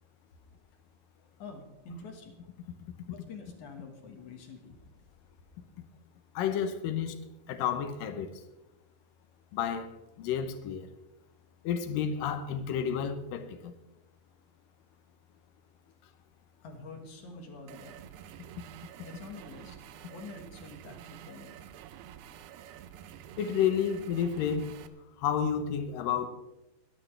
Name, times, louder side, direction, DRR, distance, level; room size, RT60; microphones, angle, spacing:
voice 1, 1.4-2.4 3.1-4.8 16.6-18.0 19.0-19.8 20.1-21.6, left 3 dB, 55° left, 2.4 m, -46 dB
voice 2, 6.4-7.2 7.5-8.3 9.5-9.9 10.2-10.9 11.6-13.7 23.4-24.8 25.2-26.3, left 8 dB, 75° left, 2.2 m, -30 dB
sound 1, 17.7-24.9, right 11 dB, 80° right, 2.7 m, -49 dB
23.5 x 11.0 x 3.3 m
omnidirectional pair, 5.0 m